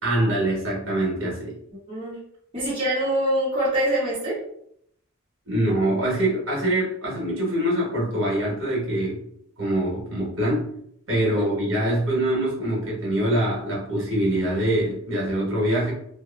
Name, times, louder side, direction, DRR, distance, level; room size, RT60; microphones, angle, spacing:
voice 1, 0.0-1.5 5.5-9.2 9.6-10.7 11.1-15.9, right 1 dB, 65° right, -5 dB, 1.1 m, -24 dB
voice 2, 1.9-2.2 2.5-4.4 11.2-11.4, right 1 dB, 25° right, -8 dB, 1.0 m, -24 dB
2.7 x 2.3 x 2.4 m, 0.71 s
head